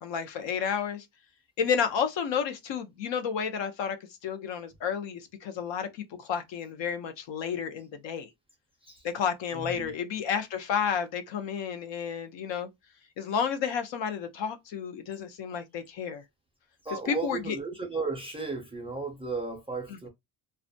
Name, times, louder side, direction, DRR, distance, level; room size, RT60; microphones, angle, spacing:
voice 1, 0.0-1.1 1.6-4.0 4.2-8.3 9.0-12.7 13.2-16.2 17.1-17.6, left 7 dB, 70° left, 0.7 m, -31 dB
voice 2, 9.5-9.9 16.8-20.1, right 4 dB, 15° right, 0.3 m, -35 dB
2.3 x 2.1 x 2.6 m
cardioid pair, 165°, 46 cm